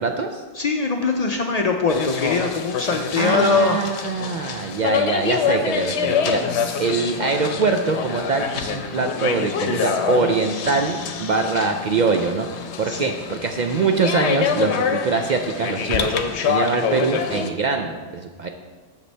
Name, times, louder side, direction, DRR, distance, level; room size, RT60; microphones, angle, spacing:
voice 1, 0.0-0.4 3.2-6.4 6.8-12.5 12.8-16.1 16.5-18.5, right 4 dB, 55° right, 4 dB, 0.5 m, -23 dB
voice 2, 0.6-3.8 12.9-13.1, left 4 dB, 50° left, 3 dB, 0.5 m, -21 dB
sound 1, 1.9-17.5, left 6 dB, 85° left, 0.9 m, -26 dB
7.9 x 6.8 x 3.3 m, 1.4 s
omnidirectional pair, 1.1 m